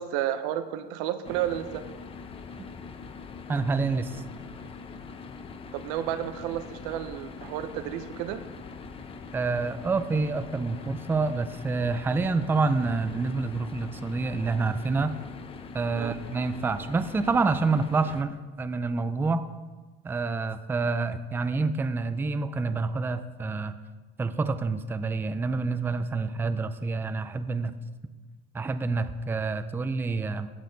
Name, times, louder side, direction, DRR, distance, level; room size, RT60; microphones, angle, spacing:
voice 1, 0.0-1.8 5.7-8.4 16.0-16.1, right 11 dB, 85° right, 10 dB, 0.8 m, -31 dB
sound 1, 1.2-18.2, left 5 dB, 30° left, 0.8 m, -42 dB
voice 2, 3.5-4.2 9.3-15.1 15.7-19.5 20.0-23.7 24.2-27.7 28.5-30.5, right 3 dB, 10° right, 11 dB, 0.4 m, -27 dB
16.0 x 6.3 x 4.0 m, 1.3 s
cardioid pair, 135°, 20 cm